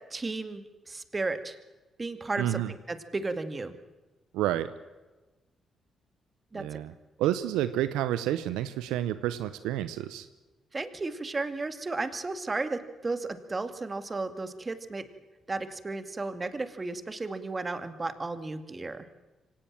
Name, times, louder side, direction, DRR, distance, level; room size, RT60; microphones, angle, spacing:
voice 1, 0.1-1.6 2.0-3.7 6.5-6.6 10.7-15.1 15.5-19.1, right 3 dB, 30° right, 10 dB, 2.3 m, -34 dB
voice 2, 2.4-2.7 4.3-4.7 6.5-6.9 7.2-10.3, right 13 dB, 85° right, 13 dB, 0.8 m, -29 dB
25.0 x 18.0 x 7.6 m, 1.2 s
hypercardioid pair, 50°, 0 cm